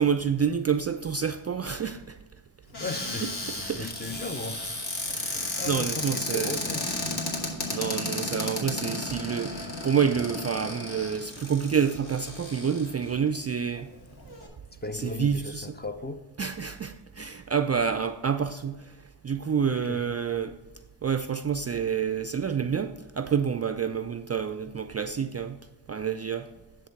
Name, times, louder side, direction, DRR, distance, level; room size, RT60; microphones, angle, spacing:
voice 1, 0.0-2.2 3.0-3.9 5.1-6.6 7.7-13.9 14.9-15.7 16.4-19.0 19.2-20.6 21.0-25.6 25.9-26.5, right 7 dB, 35° right, 0.4 m, -28 dB
Cupboard open or close, 2.7-13.1 13.8-13.9 14.1-14.5, left 2 dB, 50° left, 2.5 m, -33 dB
voice 2, 2.8-4.6 5.5-6.8 14.8-16.3 19.7-20.2, left 3 dB, 20° left, 0.6 m, -36 dB
10.5 x 3.5 x 5.8 m
cardioid pair, 60°, 50 cm